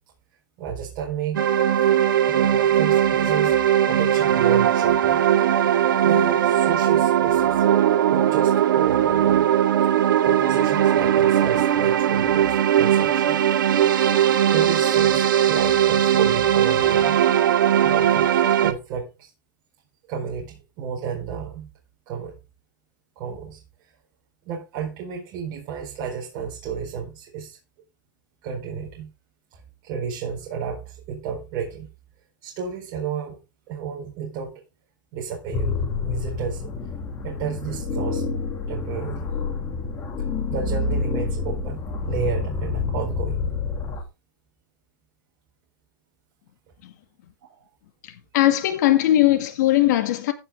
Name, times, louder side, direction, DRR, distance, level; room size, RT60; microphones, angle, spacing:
voice 1, 0.6-1.4 2.3-3.6 3.9-5.2 6.0-7.6 8.1-9.5 9.8-9.9 10.2-13.4 14.5-17.2 17.8-19.3 20.1-21.7 22.1-22.4 23.2-23.6 24.5-27.6 28.4-29.1 29.5-31.9 32.4-33.4 33.7-34.6 35.1-36.7 37.2-38.3 38.7-39.3 40.5-41.8 42.1-43.5 47.4-47.6, right 6 dB, 40° right, 4.4 m, -32 dB
sound 1, 1.3-18.7, right 10 dB, 85° right, 2.0 m, -19 dB
sound 2, 35.5-44.0, left 4 dB, 20° left, 2.5 m, -28 dB
voice 2, 48.0-50.3, left 14 dB, 60° left, 2.0 m, -19 dB
15.5 x 6.2 x 3.6 m
supercardioid pair, 155°, 11 cm